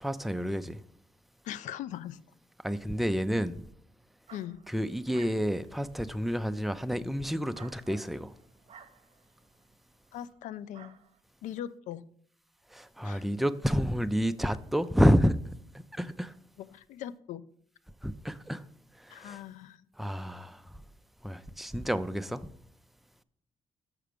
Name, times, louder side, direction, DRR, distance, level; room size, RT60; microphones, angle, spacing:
voice 1, 0.0-0.8 2.6-3.6 4.7-8.3 12.7-15.5 15.9-16.3 18.0-18.6 19.0-19.4 20.0-20.6 21.2-22.5, equal, ahead, 0.4 m, -29 dB
voice 2, 1.4-2.2 4.3-4.6 10.1-11.0 11.4-12.0 13.0-13.3 14.5-14.6 16.6-17.4 19.1-19.9, left 11 dB, 75° left, 0.4 m, -40 dB
sound 1, 4.3-9.8 10.2-10.4 10.7-11.2, right 7 dB, 60° right, 0.8 m, -55 dB
6.5 x 6.0 x 5.0 m
supercardioid pair, 70°, 13 cm